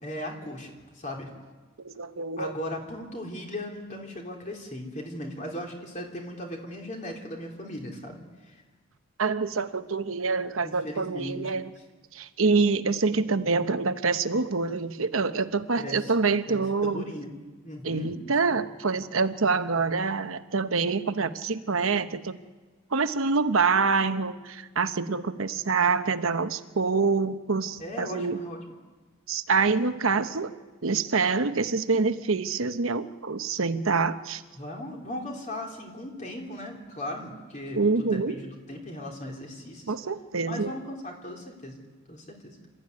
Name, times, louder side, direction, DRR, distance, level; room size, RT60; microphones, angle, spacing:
voice 1, 0.0-1.3 2.4-8.2 8.5-8.6 10.6-11.5 15.8-16.1 16.5-17.3 17.6-18.1 27.8-28.6 34.6-39.8 40.4-41.8 42.1-42.6, left 1 dB, 35° left, 1 dB, 3.4 m, -37 dB
voice 2, 1.8-2.5 9.2-11.7 12.1-17.1 17.8-22.4 22.9-28.4 29.3-30.5 30.8-34.4 37.8-38.4 39.9-40.7, right 4 dB, 75° right, 10 dB, 1.0 m, -26 dB
27.5 x 13.5 x 9.5 m, 1.3 s
head